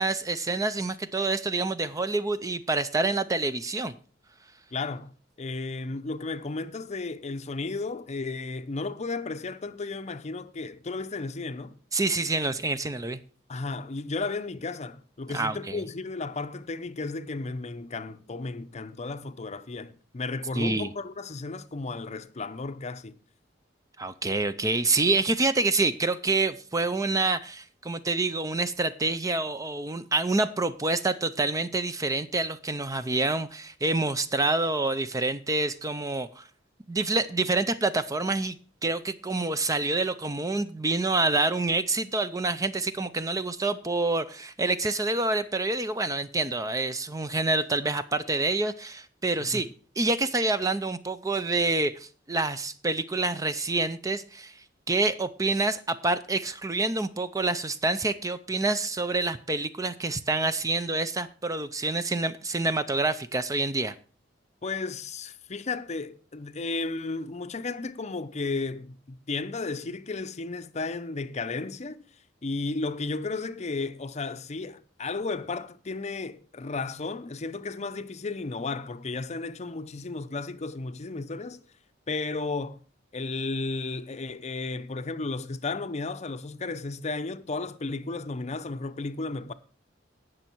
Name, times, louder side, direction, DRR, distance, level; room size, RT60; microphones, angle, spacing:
voice 1, 0.0-3.9 11.9-13.2 15.3-15.8 20.5-20.9 24.0-36.4 36.9-49.7 50.0-54.5 54.9-63.9, right 3 dB, 20° right, 0.5 m, -27 dB
voice 2, 4.7-5.1 5.4-11.7 13.5-23.1 49.4-49.7 64.6-72.0 72.4-81.6 82.1-82.8 83.1-89.5, left 3 dB, 35° left, 0.6 m, -34 dB
17.5 x 6.4 x 4.5 m
head